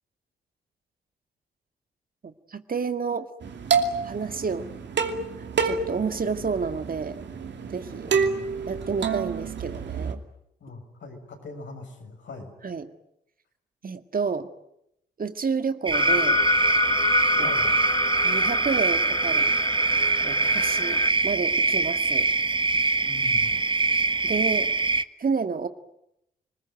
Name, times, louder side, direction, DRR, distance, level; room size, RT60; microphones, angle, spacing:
voice 1, 2.2-3.3 4.0-4.7 5.6-7.2 7.7-8.1 8.7-10.2 12.6-12.9 13.8-14.5 15.2-16.4 17.4-17.5 18.2-19.5 20.2-22.3 24.2-24.7 25.2-25.7, right 5 dB, 45° right, 9 dB, 1.9 m, -30 dB
sound 1, 3.4-10.1, right 5 dB, 60° right, 2.6 m, -28 dB
voice 2, 10.6-12.6 17.4-17.8 23.0-23.6, left 3 dB, 65° left, 4 dB, 6.8 m, -41 dB
sound 2, 15.9-21.1, left 4 dB, 20° left, 1.2 m, -27 dB
sound 3, 15.9-25.0, right 3 dB, 25° right, 1.2 m, -23 dB
28.5 x 20.5 x 9.3 m, 0.81 s
hypercardioid pair, 40°, 21 cm